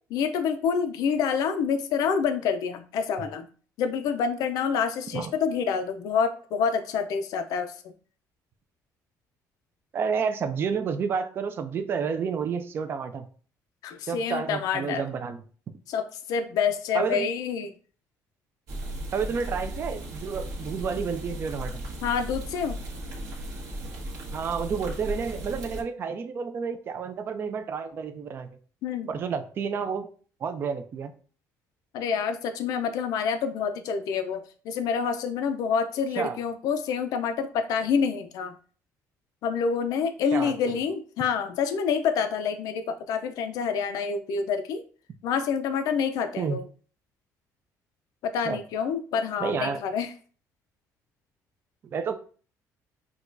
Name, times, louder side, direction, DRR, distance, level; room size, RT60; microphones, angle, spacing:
voice 1, 0.1-3.5 3.8-7.7 13.8-15.0 15.9-17.7 22.0-22.8 28.8-29.1 31.9-38.5 39.4-44.8 45.2-46.7 48.2-50.1, left 6 dB, 70° left, 0.4 m, -27 dB
voice 2, 9.9-13.3 14.1-15.4 16.9-17.3 19.1-21.8 24.3-28.5 29.1-30.1 30.4-31.1 36.2-36.4 40.3-40.5 46.4-46.6 48.4-48.6 49.4-49.8 51.9-52.2, right 6 dB, 35° right, 0.4 m, -30 dB
sound 1, 18.7-25.8, right 1 dB, 65° right, 1.4 m, -36 dB
6.2 x 2.3 x 2.5 m
cardioid pair, 155°, 7 cm